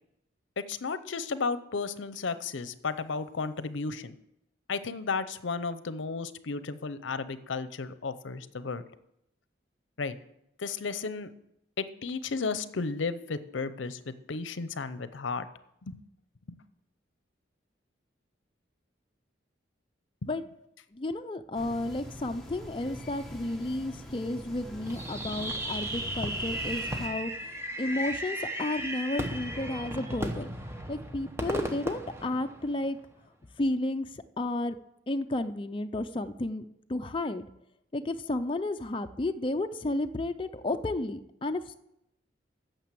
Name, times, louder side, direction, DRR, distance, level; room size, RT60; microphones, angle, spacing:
voice 1, 0.6-4.1 4.7-8.8 10.0-10.1 10.6-11.3 11.8-15.5 15.9-16.0 20.2-20.3, left 4 dB, 75° left, 13 dB, 0.6 m, -33 dB
voice 2, 20.9-27.5 27.8-30.5 30.9-33.0 33.6-34.8 35.1-36.6 36.9-37.4 37.9-41.7, left 2 dB, 25° left, 7 dB, 0.4 m, -32 dB
sound 1, 21.5-27.1, left 1 dB, ahead, 1.2 m, -43 dB
Fireworks, 24.9-33.0, right 1 dB, 15° right, 0.8 m, -35 dB
9.1 x 6.9 x 7.5 m, 0.81 s
head